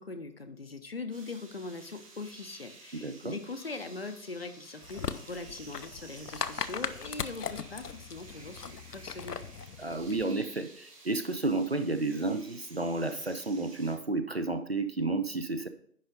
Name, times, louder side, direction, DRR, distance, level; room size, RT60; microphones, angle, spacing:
voice 1, 0.0-9.5, left 3 dB, 40° left, 8 dB, 0.6 m, -41 dB
sound 1, 1.1-14.0, right 3 dB, 20° right, 1.3 m, -53 dB
voice 2, 2.9-3.4 9.8-15.7, right 2 dB, 45° right, 10 dB, 0.5 m, -31 dB
sound 2, 4.8-10.3, left 6 dB, 80° left, 0.7 m, -39 dB
10.5 x 3.9 x 5.2 m, 0.62 s
figure-of-eight pair, 150°, 47 cm